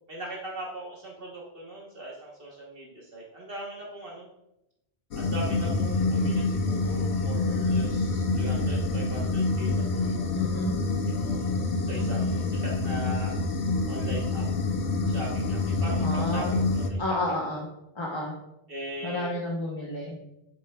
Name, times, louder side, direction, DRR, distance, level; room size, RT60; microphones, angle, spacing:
voice 1, 0.1-4.3 5.1-10.4 11.1-13.3 13.9-14.4 15.1-17.4 18.7-19.3, right 1 dB, 60° right, -3 dB, 1.3 m, -40 dB
sound 1, 5.1-16.9, left 3 dB, 80° left, 1.0 m, -27 dB
voice 2, 10.3-10.8 16.0-16.6 17.0-17.7 17.9-18.3 19.0-20.2, left 2 dB, 25° left, -3 dB, 0.9 m, -30 dB
8.9 x 6.7 x 2.3 m, 0.90 s
omnidirectional pair, 1.1 m